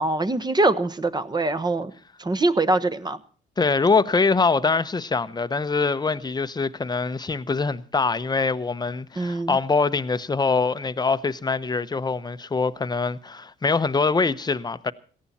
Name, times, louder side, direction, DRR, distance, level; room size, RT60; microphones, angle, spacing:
voice 1, 0.0-1.9 2.2-3.2 9.2-9.6, right 2 dB, 20° right, 1.1 m, -23 dB
voice 2, 3.6-14.9, left 4 dB, 20° left, 0.8 m, -23 dB
17.5 x 14.0 x 4.2 m
cardioid pair, 90°, 20 cm